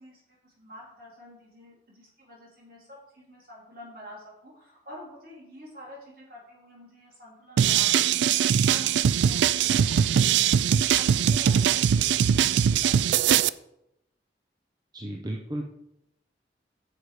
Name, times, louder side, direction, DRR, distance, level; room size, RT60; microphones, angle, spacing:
voice 1, 0.0-8.9 9.2-12.2 12.8-13.5, equal, 55° right, -4 dB, 3.5 m, -47 dB
sound 1, 7.6-13.5, right 8 dB, 80° right, 0.3 m, -21 dB
voice 2, 14.9-15.6, right 1 dB, 20° right, 1 dB, 0.6 m, -33 dB
8.5 x 6.7 x 4.8 m, 0.82 s
head